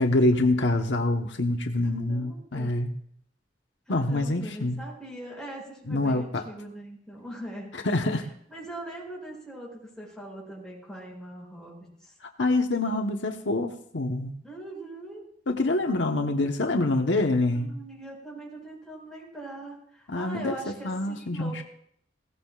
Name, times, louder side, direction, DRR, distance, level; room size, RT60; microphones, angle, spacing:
voice 1, 0.0-2.9 3.9-4.8 5.9-6.4 7.8-8.3 12.4-14.3 15.5-17.7 20.1-20.6 20.8-21.6, left 2 dB, 80° left, 4 dB, 1.2 m, -25 dB
voice 2, 1.8-2.7 3.9-7.8 8.5-11.7 12.0-12.1 14.4-15.2 17.6-21.6, right 1 dB, 5° left, -4 dB, 6.8 m, -41 dB
20.5 x 17.0 x 2.5 m, 0.66 s
head